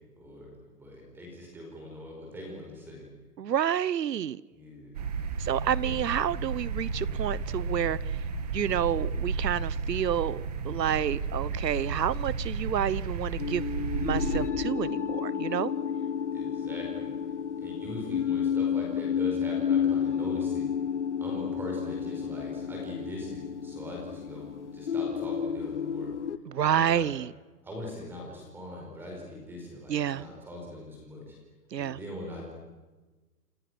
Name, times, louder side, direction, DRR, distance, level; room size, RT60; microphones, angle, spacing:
voice 1, 0.2-0.5 0.8-3.1 4.5-5.0 5.8-6.0 11.3-11.6 16.3-17.1 17.6-20.7 21.2-26.1 26.6-27.1 27.6-31.4 31.8-32.5, left 1 dB, 5° right, -1 dB, 4.8 m, -41 dB
voice 2, 3.4-4.4 5.4-8.2 8.5-13.7 14.0-15.7 26.5-27.3 29.9-30.2 31.7-32.0, right 9 dB, 80° right, 20 dB, 1.2 m, -29 dB
sound 1, 4.9-14.5, right 4 dB, 25° right, 1.4 m, -33 dB
sound 2, 13.4-26.4, left 8 dB, 45° left, 0.9 m, -31 dB
29.0 x 28.5 x 6.3 m, 1.2 s
hypercardioid pair, 180°, 49 cm